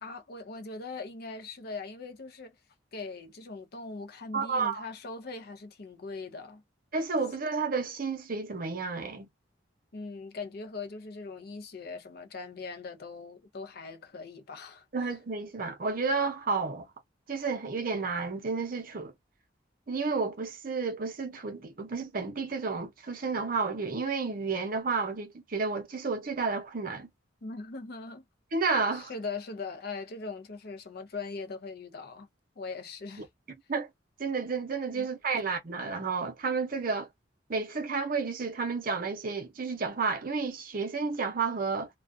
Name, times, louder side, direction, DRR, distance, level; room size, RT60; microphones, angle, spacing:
voice 1, 0.0-2.6 2.9-6.6 9.9-15.1 27.4-28.2 28.9-32.3 32.6-33.3 34.9-35.1, left 4 dB, 55° left, 0.5 m, -40 dB
voice 2, 4.3-4.8 6.9-9.3 14.9-16.9 17.3-19.1 19.9-27.1 28.5-29.1 33.7-33.9 34.2-37.1 37.5-41.9, right 4 dB, 50° right, 0.6 m, -31 dB
2.3 x 2.2 x 2.5 m
head